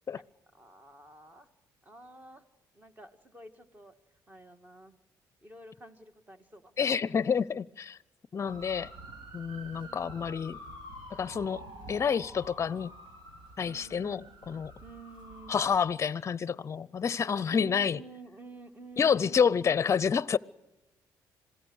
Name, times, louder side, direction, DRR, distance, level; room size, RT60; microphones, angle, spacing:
voice 1, 0.5-1.5 1.8-2.4 2.7-3.9 4.3-5.0 5.4-6.9 9.6-10.3 11.5-12.1 13.6-14.4 14.8-15.6 17.4-20.2, right 2 dB, 20° right, 2.0 m, -51 dB
voice 2, 6.8-8.0 8.3-8.9 9.3-10.6 11.1-12.9 13.6-14.7 15.5-18.0 19.0-20.4, left 6 dB, 35° left, 0.6 m, -28 dB
sound 1, 8.4-15.8, right 1 dB, 75° right, 5.9 m, -48 dB
26.5 x 17.0 x 6.4 m
cardioid pair, 90°, 8 cm